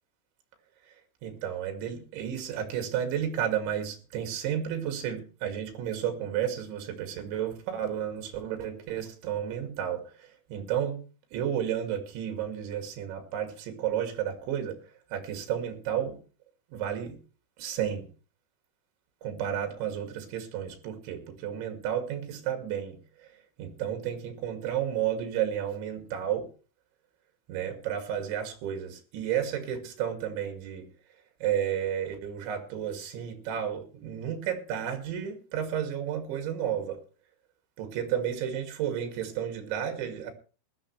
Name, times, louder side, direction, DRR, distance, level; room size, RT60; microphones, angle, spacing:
voice 1, 1.2-11.0 11.3-16.2 16.7-17.2 17.6-18.1 19.2-26.5 27.5-30.9 31.4-37.0 37.8-40.3, right 9 dB, 70° right, 5 dB, 4.6 m, -32 dB
19.5 x 12.5 x 3.2 m, 0.37 s
omnidirectional pair, 5.5 m